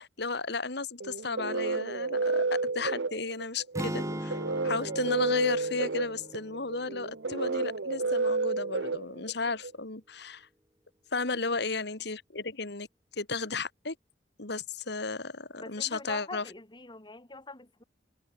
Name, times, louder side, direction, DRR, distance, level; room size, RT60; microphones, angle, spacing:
voice 1, 0.0-4.4 4.6-10.5 11.1-12.9 13.2-14.0 14.4-16.4, left 4 dB, 65° left, 2.3 m, -34 dB
sound 1, 1.0-9.7, right 3 dB, 75° right, 0.9 m, -31 dB
sound 2, 3.8-7.9, right 1 dB, 15° right, 7.1 m, -40 dB
voice 2, 15.6-17.8, left 3 dB, 25° left, 3.3 m, -44 dB
head